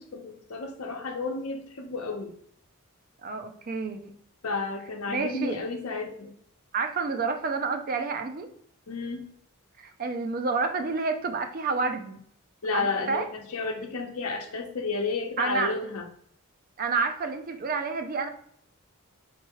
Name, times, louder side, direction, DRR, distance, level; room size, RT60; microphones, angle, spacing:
voice 1, 0.0-2.3 4.4-6.3 8.9-9.3 12.6-16.1, left 3 dB, 80° left, 3 dB, 0.8 m, -32 dB
voice 2, 3.2-4.1 5.1-5.6 6.7-8.5 9.8-12.2 12.7-13.3 15.4-15.7 16.8-18.3, right 4 dB, 40° right, 7 dB, 0.4 m, -29 dB
4.6 x 2.9 x 3.0 m, 0.65 s
head